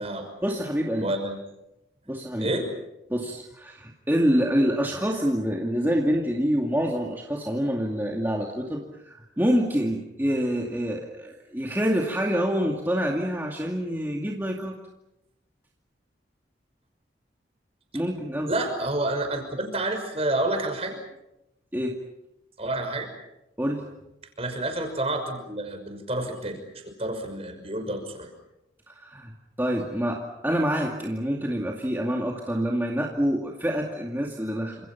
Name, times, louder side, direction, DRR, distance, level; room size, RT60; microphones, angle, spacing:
voice 1, 0.4-1.1 2.1-2.5 3.1-14.8 17.9-18.5 21.7-22.0 23.6-23.9 28.9-29.3 29.6-34.8, equal, 10° right, -1 dB, 2.4 m, -26 dB
voice 2, 1.0-1.4 2.4-2.7 18.5-21.0 22.6-23.1 24.4-28.3, right 1 dB, 30° right, 6 dB, 5.9 m, -29 dB
29.5 x 27.5 x 5.9 m, 0.90 s
head